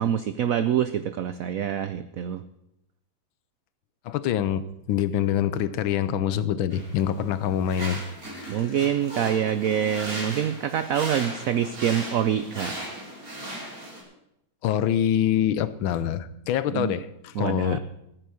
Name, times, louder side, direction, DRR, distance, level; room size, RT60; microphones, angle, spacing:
voice 1, 0.0-2.4 8.5-12.7 16.7-17.0 17.3-17.8, right 9 dB, 85° right, 12 dB, 0.7 m, -26 dB
voice 2, 4.0-4.6 4.9-8.0 8.3-8.6 14.6-17.8, left 10 dB, 90° left, 15 dB, 1.6 m, -25 dB
sound 1, 6.7-14.0, right 1 dB, 45° right, 3.6 m, -37 dB
15.0 x 9.1 x 6.4 m, 0.83 s
omnidirectional pair, 2.1 m